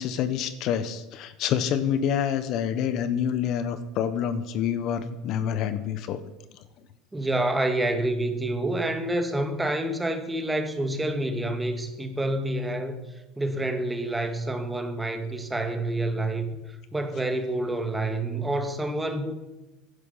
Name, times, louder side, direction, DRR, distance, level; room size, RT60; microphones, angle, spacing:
voice 1, 0.0-6.2, left 8 dB, 55° left, 11 dB, 1.2 m, -27 dB
voice 2, 7.1-13.0 13.4-16.5 16.9-19.3, right 1 dB, 10° right, 6 dB, 2.0 m, -28 dB
16.5 x 10.5 x 5.8 m, 1.0 s
supercardioid pair, 120°, 0 cm